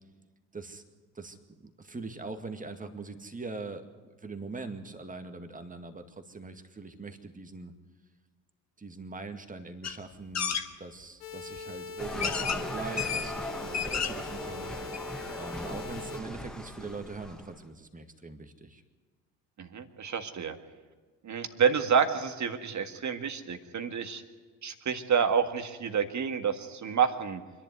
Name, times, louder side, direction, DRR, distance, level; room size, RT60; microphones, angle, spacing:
voice 1, 0.5-0.8 1.1-7.7 8.8-14.7 15.4-18.8, right 3 dB, 15° right, 7 dB, 2.1 m, -42 dB
sound 1, 9.8-10.0 10.3-10.6 11.6-11.7 12.2-12.6 13.0-13.3 13.6-14.3 14.6-14.7 14.9-15.0, left 7 dB, 35° left, 1.5 m, -31 dB
sound 2, 11.2-16.2, left 4 dB, 75° left, 1.7 m, -42 dB
sound 3, 12.0-17.6, equal, ahead, 1.5 m, -39 dB
voice 2, 19.6-20.6 21.2-24.2 24.6-27.4, right 7 dB, 40° right, 8 dB, 1.9 m, -28 dB
25.5 x 11.0 x 9.4 m, 1.4 s
figure-of-eight pair, 55°, 46 cm